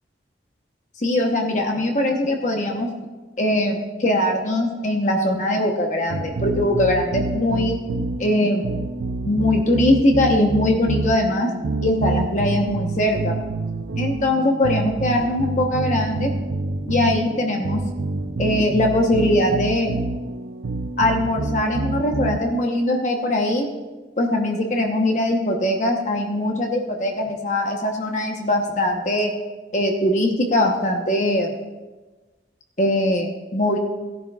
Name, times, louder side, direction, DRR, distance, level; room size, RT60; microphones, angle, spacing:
voice 1, 1.0-2.9 3.4-7.8 8.2-8.7 9.3-11.5 11.8-13.3 14.0-16.3 16.9-17.8 18.4-19.9 21.0-23.7 24.2-29.3 29.7-31.5 32.8-33.8, left 1 dB, 40° left, 2 dB, 1.0 m, -21 dB
sound 1, 6.1-22.4, right 3 dB, 90° right, 0.6 m, -27 dB
17.0 x 10.5 x 2.4 m, 1.2 s
head